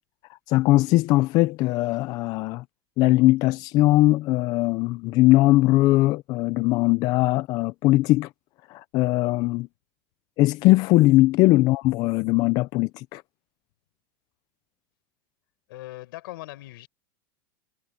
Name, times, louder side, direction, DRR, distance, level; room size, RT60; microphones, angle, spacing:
voice 1, 0.3-2.6 3.0-8.3 8.7-9.7 10.4-13.2, left 18 dB, 35° left, 0.4 m, -20 dB
voice 2, 15.7-16.9, left 18 dB, 75° left, 4.6 m, -40 dB
supercardioid pair, 160°, 12 cm